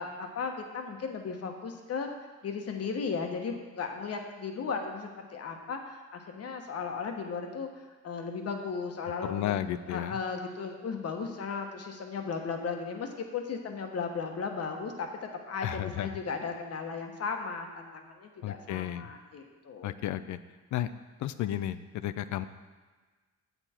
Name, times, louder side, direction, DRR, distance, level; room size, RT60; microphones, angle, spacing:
voice 1, 0.0-2.1 2.4-9.5 9.9-19.9, left 5 dB, 55° left, 3 dB, 1.2 m, -36 dB
voice 2, 9.2-10.2 15.6-16.1 18.4-19.1 19.8-20.4 20.7-20.9 21.2-22.5, left 12 dB, 70° left, 13 dB, 0.5 m, -33 dB
7.8 x 7.0 x 4.4 m, 1.4 s
cardioid pair, 90°, 30 cm